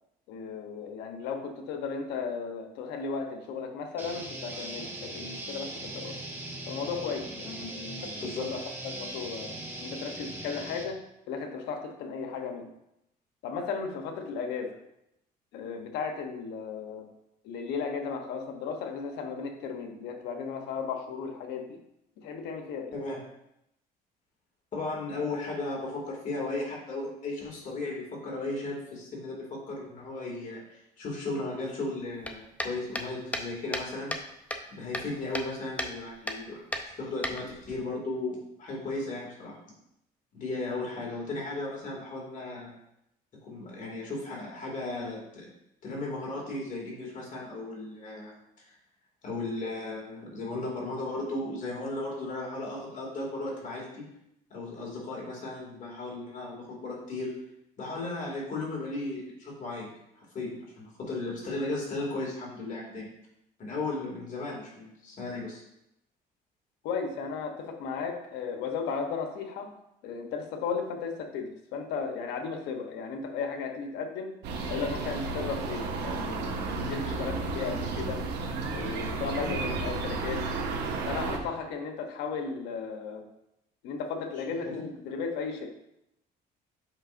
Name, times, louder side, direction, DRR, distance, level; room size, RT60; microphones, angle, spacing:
voice 1, 0.3-6.2 6.7-11.0 11.3-12.7 13.4-14.8 15.5-17.1 17.4-21.8 22.2-22.9 66.8-69.7 70.0-74.3 74.7-78.3 78.7-80.4 81.1-83.2 83.8-85.7, left 5 dB, 90° left, 4 dB, 1.0 m, -35 dB
sound 1, 4.0-10.8, right 1 dB, 15° right, 1.2 m, -40 dB
voice 2, 24.7-34.1 34.7-36.6 36.9-39.6 40.3-42.7 43.4-45.5 45.8-48.3 49.2-54.0 54.5-57.3 57.8-59.9 60.2-63.1 63.6-65.6 84.6-84.8, left 2 dB, 50° left, -3 dB, 2.4 m, -35 dB
sound 2, 32.2-34.3 34.5-35.5 35.8-35.9 36.3-36.4 36.7-37.8, left 1 dB, 10° left, 0.6 m, -34 dB
sound 3, 74.4-81.4, right 3 dB, 85° right, 1.1 m, -33 dB
7.8 x 5.7 x 2.6 m, 0.83 s
cardioid pair, 110°, 17 cm